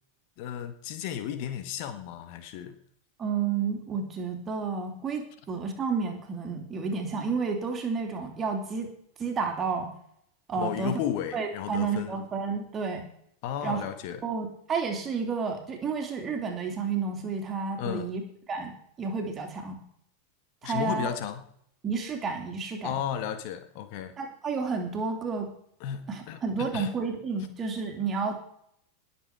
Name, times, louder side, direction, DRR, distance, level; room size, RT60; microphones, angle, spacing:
voice 1, 0.4-2.8 10.6-12.2 13.4-14.2 17.8-18.1 20.6-21.5 22.8-24.1 25.8-26.9, left 9 dB, 45° left, 9 dB, 1.5 m, -34 dB
voice 2, 3.2-8.9 9.2-9.9 10.5-11.0 11.3-13.0 13.6-13.8 14.2-18.2 18.5-18.7 19.0-19.8 20.6-21.1 21.8-22.9 24.2-25.5 26.1-28.5, right 5 dB, 25° right, 3 dB, 3.2 m, -31 dB
20.0 x 7.5 x 4.9 m, 0.67 s
figure-of-eight pair, 90°, 0 cm